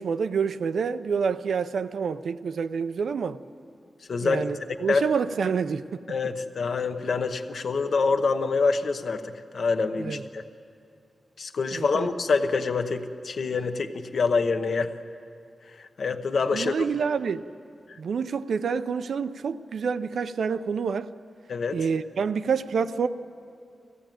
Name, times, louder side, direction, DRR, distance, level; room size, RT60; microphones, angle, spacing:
voice 1, 0.0-3.4 4.2-6.0 10.0-10.2 11.7-12.1 16.5-17.4 18.0-21.1 21.7-23.1, right 6 dB, 75° right, 0.6 m, -27 dB
voice 2, 4.1-4.6 4.9-5.1 6.1-10.4 11.4-14.9 15.7-16.7 17.9-18.0 21.5-21.8, left 4 dB, 55° left, 1.0 m, -26 dB
21.0 x 15.5 x 9.1 m
wide cardioid pair, 170°, 0 cm